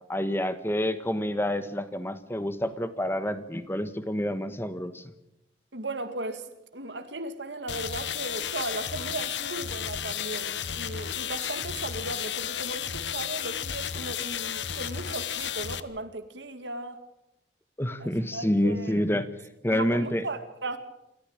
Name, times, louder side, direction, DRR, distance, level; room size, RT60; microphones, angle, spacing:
voice 1, 0.0-5.0 17.8-19.3 19.6-20.2, left 1 dB, 15° left, 1.4 m, -28 dB
voice 2, 5.7-17.0 18.0-19.0 19.7-20.8, right 2 dB, 85° right, 2.3 m, -37 dB
sound 1, 7.7-15.8, left 9 dB, 90° left, 1.2 m, -33 dB
28.0 x 14.0 x 9.0 m
head